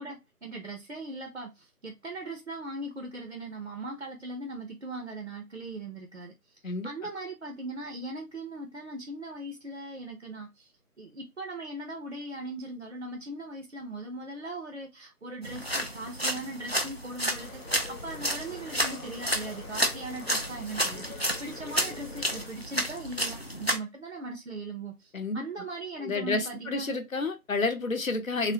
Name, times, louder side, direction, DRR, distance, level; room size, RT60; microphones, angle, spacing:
voice 1, 0.0-6.6 6.8-10.7 11.0-26.9, right 2 dB, 50° right, 0.5 m, -39 dB
sound 1, 15.4-23.8, equal, 45° left, 0.4 m, -31 dB
sound 2, 17.4-22.5, left 4 dB, 85° left, 1.1 m, -46 dB
voice 2, 25.1-25.5 26.0-28.5, left 3 dB, 60° left, 0.8 m, -30 dB
3.5 x 2.0 x 2.6 m
figure-of-eight pair, 175°, 46 cm